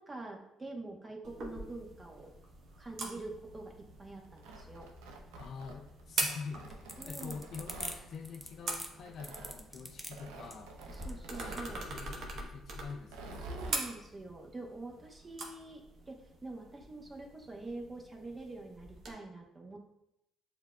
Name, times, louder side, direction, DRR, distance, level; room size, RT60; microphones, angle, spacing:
voice 1, 0.0-2.3 2.8-3.7 4.0-4.9 7.0-7.4 10.9-11.9 13.5-19.8, right 2 dB, 25° right, 1 dB, 1.0 m, -45 dB
sound 1, 1.2-19.1, right 2 dB, 60° right, 0.8 m, -43 dB
Tearing, 4.2-6.0 6.5-8.0 9.1-9.6 10.1-11.7 13.0-13.8, right 2 dB, 85° right, 0.5 m, -47 dB
voice 2, 5.4-10.8 11.9-13.4, left 5 dB, 60° left, 7 dB, 0.4 m, -46 dB
sound 2, 6.7-11.7, equal, 5° left, 0.6 m, -44 dB
7.1 x 2.6 x 2.3 m, 0.83 s
supercardioid pair, 65°, 0 cm